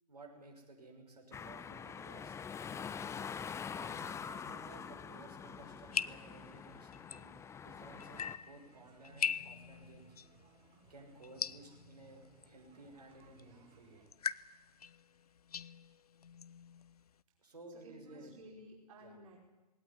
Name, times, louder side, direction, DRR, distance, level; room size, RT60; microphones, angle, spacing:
voice 1, 0.1-2.4 3.8-7.4 7.6-10.1 10.9-14.0 17.4-18.3 19.0-19.2, right 2 dB, 80° right, 0 dB, 6.3 m, -55 dB
sound 1, 1.3-8.4, left 7 dB, 15° left, 0.9 m, -45 dB
sound 2, 5.6-17.2, left 7 dB, 70° left, 0.7 m, -43 dB
sound 3, 7.7-14.1, right 7 dB, 35° right, 4.5 m, -65 dB
voice 2, 17.4-19.4, right 1 dB, 55° right, -1 dB, 5.2 m, -55 dB
20.5 x 17.5 x 10.0 m, 1.1 s
figure-of-eight pair, 100°, 20 cm